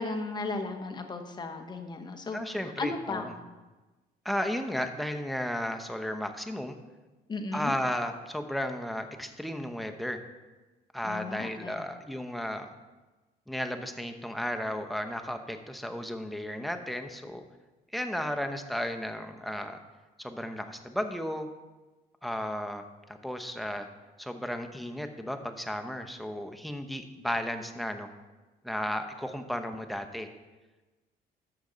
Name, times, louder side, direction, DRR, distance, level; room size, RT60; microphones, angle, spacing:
voice 1, 0.0-3.3 7.3-7.7 11.0-11.8, left 3 dB, 25° left, 5 dB, 1.1 m, -35 dB
voice 2, 2.3-3.3 4.2-6.8 7.5-10.2 10.9-12.7 13.5-17.4 17.9-19.8 20.2-21.5 22.2-23.9 24.2-28.1 28.6-30.3, equal, ahead, 5 dB, 0.8 m, -34 dB
13.0 x 6.3 x 4.0 m, 1.2 s
cardioid pair, 110°, 17 cm